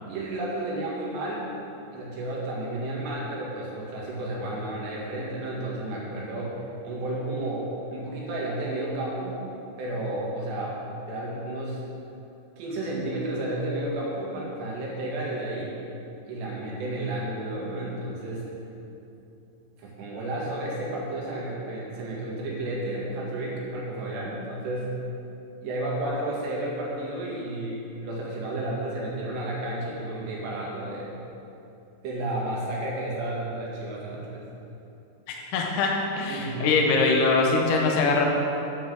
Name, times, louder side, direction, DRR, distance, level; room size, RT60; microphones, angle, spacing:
voice 1, 0.1-1.5 1.9-6.6 6.8-9.5 9.8-10.8 11.1-11.8 12.6-15.8 16.3-18.5 19.8-24.9 25.6-31.2 32.0-34.5 36.3-36.7, right 1 dB, 80° right, -4 dB, 4.2 m, -32 dB
voice 2, 35.5-35.9 36.2-38.3, left 4 dB, 70° left, -1 dB, 2.0 m, -22 dB
10.5 x 6.0 x 7.7 m, 2.8 s
omnidirectional pair, 4.9 m